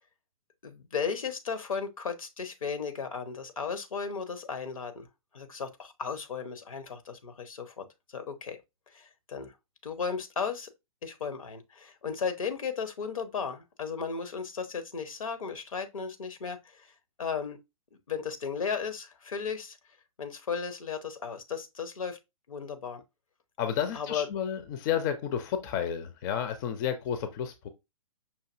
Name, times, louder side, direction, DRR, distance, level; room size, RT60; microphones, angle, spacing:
voice 1, 0.6-5.1 5.3-8.6 8.9-9.5 9.8-10.7 11.0-16.9 17.2-17.6 18.1-19.8 20.2-22.2 22.5-23.0 23.9-24.3, left 6 dB, 75° left, 0.9 m, -35 dB
voice 2, 23.6-27.7, left 9 dB, 35° left, 0.5 m, -31 dB
5.6 x 2.6 x 2.5 m
figure-of-eight pair, 115°, 18 cm